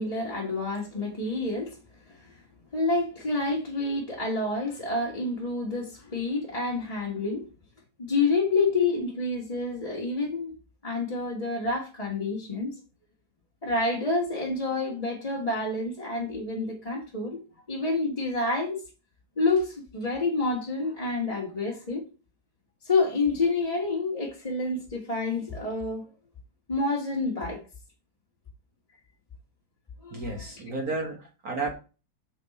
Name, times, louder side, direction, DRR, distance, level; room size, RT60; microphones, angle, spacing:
voice 1, 0.0-1.8 2.1-2.3 2.7-7.5 8.0-10.5 10.8-12.7 13.6-17.4 17.7-18.8 19.4-22.0 22.8-26.1 26.7-27.6 30.0-30.2 30.7-30.8, left 3 dB, 20° left, 1.5 m, -28 dB
voice 2, 30.1-31.7, right 3 dB, 50° right, 1.9 m, -32 dB
6.9 x 5.4 x 4.1 m
omnidirectional pair, 2.1 m